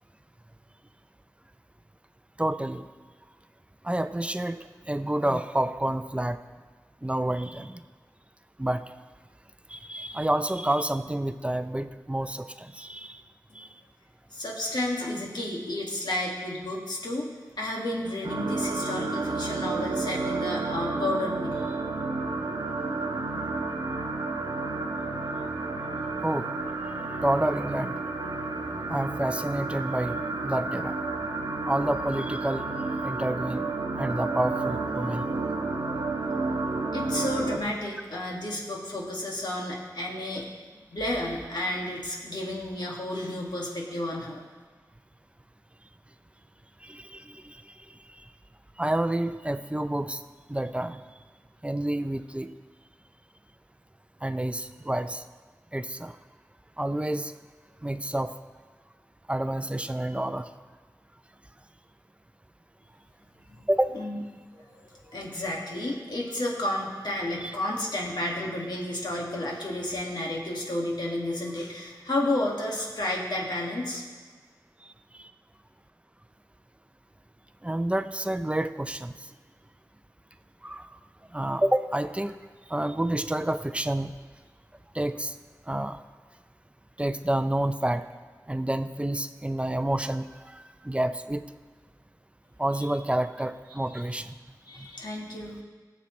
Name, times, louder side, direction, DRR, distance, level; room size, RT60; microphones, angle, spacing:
voice 1, 2.4-2.8 3.8-4.6 4.9-6.4 7.0-7.8 8.6-8.8 9.7-13.2 13.5-13.7 26.2-26.5 27.2-28.0 28.9-31.0 31.6-32.7 33.0-33.7 34.0-35.3 46.8-47.6 48.8-50.2 50.5-51.0 51.6-52.5 54.2-55.2 55.7-56.2 56.8-57.3 57.8-58.3 59.3-60.5 63.7-63.9 67.4-67.5 74.8-74.9 75.2-75.3 77.6-79.1 80.6-80.9 81.3-82.3 82.7-84.1 84.9-85.3 85.7-86.0 87.0-88.0 88.5-91.4 92.6-94.3 94.8-94.9, right 1 dB, 15° right, 10 dB, 0.5 m, -29 dB
voice 2, 14.3-21.8 36.9-40.5 40.9-44.4 63.9-64.2 64.5-64.6 65.1-74.0 92.8-92.9 93.9-94.0 94.7-95.6, left 1 dB, 75° left, -2 dB, 2.0 m, -31 dB
sound 1, 18.2-37.6, right 3 dB, 90° right, 0.8 m, -31 dB
18.5 x 7.2 x 3.2 m, 1.4 s
wide cardioid pair, 60°, 7 cm